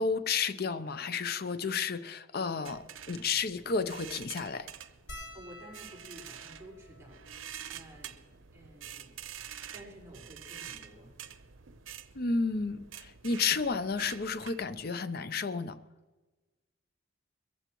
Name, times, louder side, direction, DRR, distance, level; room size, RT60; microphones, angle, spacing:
voice 1, 0.0-4.7 12.2-15.8, left 4 dB, 50° left, 12 dB, 0.6 m, -32 dB
sound 1, 2.6-14.9, right 9 dB, 85° right, 0.8 m, -48 dB
sound 2, 5.1-9.7 10.4-10.5 10.7-10.9 12.2-12.4 13.9-14.0 14.2-14.4, left 1 dB, 65° left, 3.0 m, -52 dB
voice 2, 5.3-8.2 8.5-9.1 9.7-11.1, right 1 dB, 15° right, -3 dB, 4.8 m, -52 dB
22.5 x 15.0 x 3.0 m, 1.2 s
head